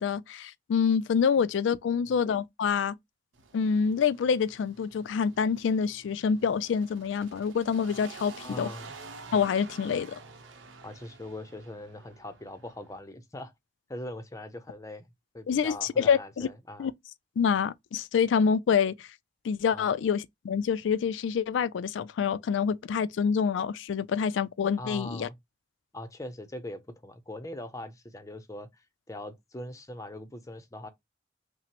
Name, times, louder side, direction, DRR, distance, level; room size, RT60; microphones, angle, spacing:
voice 1, 0.0-3.0 3.5-8.7 9.3-10.2 15.5-16.5 16.8-16.9 17.4-19.1 19.4-25.3, left 6 dB, 85° left, 0.3 m, -27 dB
sound 1, 3.3-13.0, right 4 dB, 90° right, 0.8 m, -49 dB
voice 2, 8.4-8.9 10.8-13.5 13.9-15.1 15.3-16.9 19.7-19.9 24.8-25.4 25.9-30.9, left 1 dB, 15° left, 0.5 m, -41 dB
5.7 x 2.0 x 2.9 m
head